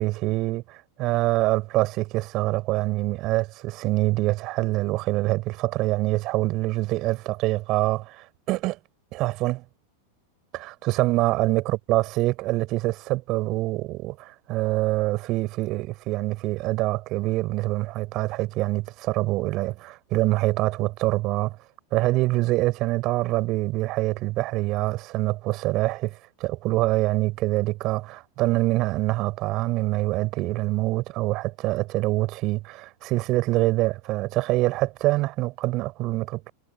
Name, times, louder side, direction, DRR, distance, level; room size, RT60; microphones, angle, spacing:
voice 1, 0.0-8.8 9.1-9.6 10.5-21.6 21.9-36.5, right 19 dB, 40° right, 7.0 m, -25 dB
figure-of-eight pair, 90°, 0 cm